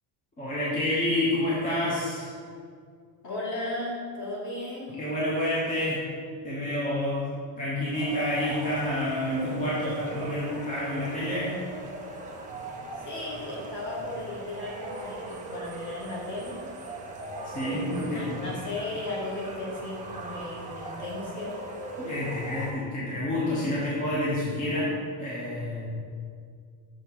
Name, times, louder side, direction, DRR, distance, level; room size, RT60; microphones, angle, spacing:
voice 1, 0.4-2.3 5.0-6.0 6.4-7.3 7.6-11.5 17.4-18.4 22.0-24.9 25.2-25.9, left 1 dB, 15° left, -7 dB, 0.7 m, -28 dB
voice 2, 3.2-5.0 13.0-16.6 17.7-21.5, left 2 dB, 35° left, -5 dB, 1.7 m, -35 dB
sound 1, 7.9-22.7, right 2 dB, 20° right, 0.4 m, -39 dB
6.3 x 3.5 x 5.7 m, 2.1 s
cardioid pair, 175°, 48 cm